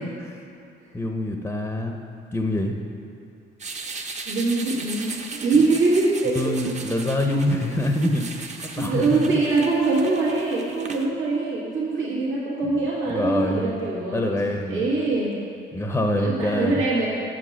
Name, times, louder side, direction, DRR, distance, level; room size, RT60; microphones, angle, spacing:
voice 1, 0.9-2.0 2.3-2.8 6.2-8.5 8.8-9.4 12.6-13.8 14.1-14.8 15.7-16.8, left 1 dB, 10° left, 3 dB, 0.6 m, -25 dB
sound 1, 3.6-11.1, right 4 dB, 35° right, 0.7 m, -37 dB
voice 2, 4.2-6.5 8.8-14.3 14.7-15.4 16.2-17.1, right 3 dB, 85° right, -6 dB, 1.7 m, -23 dB
7.4 x 5.1 x 7.1 m, 2.5 s
cardioid pair, 90°, 20 cm